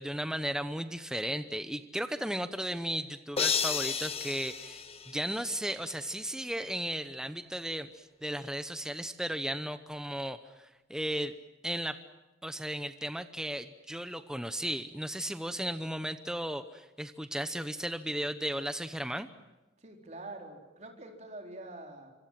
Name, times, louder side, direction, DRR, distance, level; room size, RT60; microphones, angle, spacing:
voice 1, 0.0-11.3 11.6-12.0 12.4-19.3, right 1 dB, 5° right, 10 dB, 0.8 m, -35 dB
sound 1, 3.4-5.7, left 6 dB, 30° left, 1.4 m, -32 dB
voice 2, 19.8-22.1, right 2 dB, 40° right, 2 dB, 4.2 m, -45 dB
26.0 x 25.5 x 7.6 m, 1.1 s
head